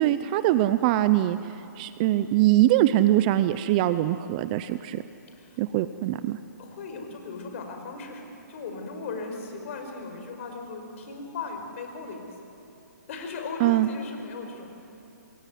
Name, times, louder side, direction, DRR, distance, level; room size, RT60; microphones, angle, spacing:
voice 1, 0.0-5.0 5.6-6.4 13.6-13.9, right 14 dB, 25° right, 13 dB, 0.6 m, -23 dB
voice 2, 6.6-12.4 13.1-14.7, left 3 dB, 45° left, 4 dB, 5.3 m, -37 dB
28.0 x 21.5 x 9.3 m, 2.9 s
hypercardioid pair, 160°, 10 cm